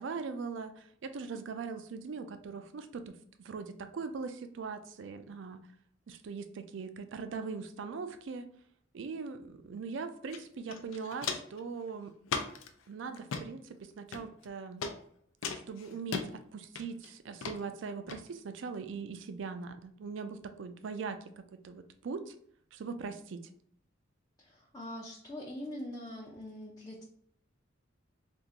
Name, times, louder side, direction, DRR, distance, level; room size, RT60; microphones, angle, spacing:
voice 1, 0.0-5.6 6.1-8.5 8.9-12.1 12.9-14.8 15.7-22.3 22.7-23.4, right 5 dB, 65° right, 9 dB, 0.4 m, -41 dB
Walk footsteps, 10.3-10.4 10.7-11.6 12.3-12.7 13.1-13.4 14.1-14.5 14.8-14.9 15.4-16.3 16.8-17.1 17.4-17.6 18.1-18.2, left 5 dB, 80° left, 0.4 m, -36 dB
voice 2, 24.4-27.0, left 1 dB, 20° left, -4 dB, 0.5 m, -43 dB
3.6 x 2.4 x 2.8 m, 0.65 s
head